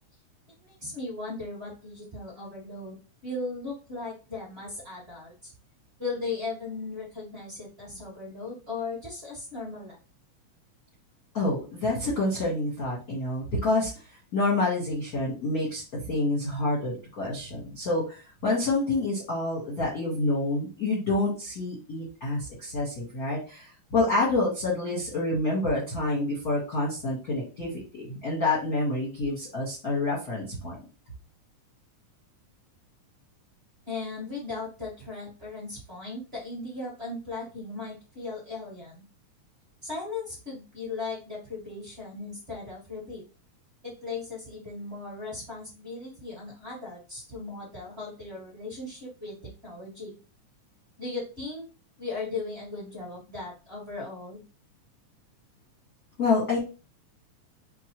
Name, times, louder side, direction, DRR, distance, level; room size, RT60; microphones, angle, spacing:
voice 1, 0.6-2.9 3.2-5.5 6.0-10.0 33.9-39.0 39.8-43.2 43.8-49.3 49.6-50.1 51.0-51.6 52.0-54.4, left 3 dB, 25° right, -6 dB, 1.4 m, -37 dB
voice 2, 11.3-13.9 14.3-30.8 56.2-56.6, left 2 dB, 50° left, -6 dB, 1.1 m, -28 dB
4.7 x 2.5 x 2.9 m, 0.33 s
omnidirectional pair, 3.5 m